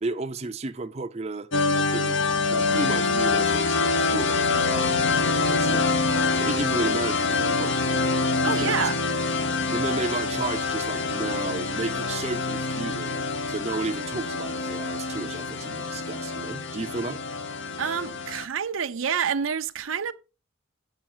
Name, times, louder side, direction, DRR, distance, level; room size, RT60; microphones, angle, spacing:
voice 1, 0.0-2.2 2.5-6.0 6.4-7.9 8.4-8.9 9.7-13.2 13.5-17.2, right 3 dB, 30° right, 0.5 m, -33 dB
sound 1, 1.5-18.4, left 4 dB, 65° left, 0.9 m, -25 dB
voice 2, 8.4-9.0 17.8-20.1, right 7 dB, 80° right, 0.6 m, -28 dB
8.9 x 6.3 x 4.4 m
head